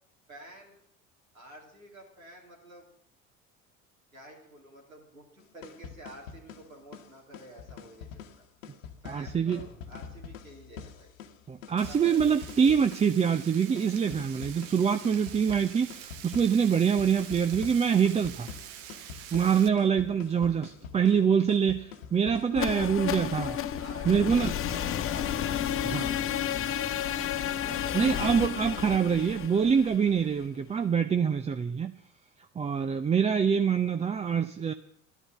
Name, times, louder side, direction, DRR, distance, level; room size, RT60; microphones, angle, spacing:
voice 1, 0.3-0.8 1.3-2.9 4.1-8.4 9.0-11.1 11.8-12.9 23.8-26.8 27.4-28.2 28.8-29.3, right 1 dB, 90° right, -2 dB, 3.3 m, -50 dB
sound 1, 5.4-25.1, left 7 dB, 70° left, 1.3 m, -46 dB
voice 2, 9.1-9.6 11.5-18.5 19.3-23.6 24.1-24.5 25.8-26.1 27.9-31.9 32.6-34.7, right 7 dB, 15° right, 9 dB, 0.5 m, -25 dB
Frying (food), 11.8-19.7, right 10 dB, 60° right, 1.2 m, -46 dB
sound 2, 22.5-30.4, left 10 dB, 30° left, 0.9 m, -31 dB
12.5 x 11.0 x 7.4 m, 0.68 s
figure-of-eight pair, 65°, 41 cm